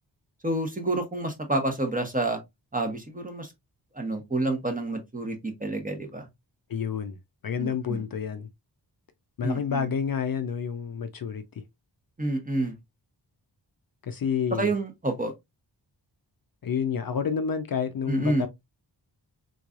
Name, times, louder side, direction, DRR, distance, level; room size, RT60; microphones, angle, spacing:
voice 1, 0.4-2.4 2.7-3.5 3.9-6.3 7.6-8.0 9.4-9.9 12.2-12.7 14.6-15.3 18.1-18.5, right 2 dB, 20° right, 0.9 m, -28 dB
voice 2, 6.7-7.2 7.4-8.5 9.4-11.4 14.0-14.7 16.6-18.5, left 7 dB, 55° left, 0.5 m, -29 dB
3.8 x 3.1 x 2.4 m
wide cardioid pair, 115°, 43 cm